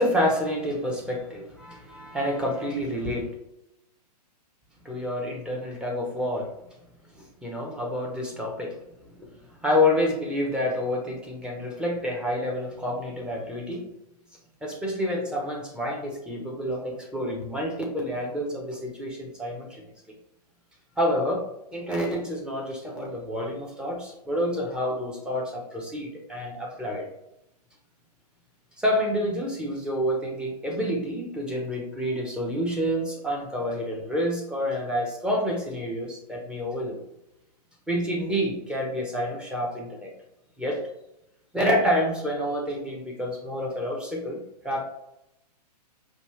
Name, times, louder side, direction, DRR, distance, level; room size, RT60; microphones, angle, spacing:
voice 1, 0.0-3.3 4.8-6.5 7.4-9.3 9.6-13.9 14.6-19.9 21.0-27.1 28.8-37.0 37.9-40.1 40.6-40.9 41.5-44.8, left 1 dB, 5° right, -3 dB, 0.8 m, -28 dB
5.2 x 2.4 x 3.2 m, 0.84 s
hypercardioid pair, 130°, 21 cm